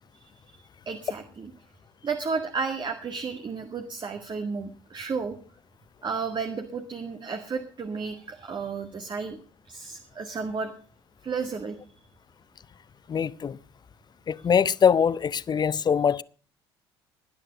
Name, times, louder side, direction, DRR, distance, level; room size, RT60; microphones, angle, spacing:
voice 1, 0.9-1.5 2.0-5.4 6.0-9.4 9.7-10.7 11.2-11.8, right 5 dB, 35° right, 1.9 m, -32 dB
voice 2, 13.1-13.6 14.3-16.2, left 7 dB, 35° left, 0.7 m, -23 dB
18.5 x 10.0 x 5.2 m
hypercardioid pair, 60°, 13 cm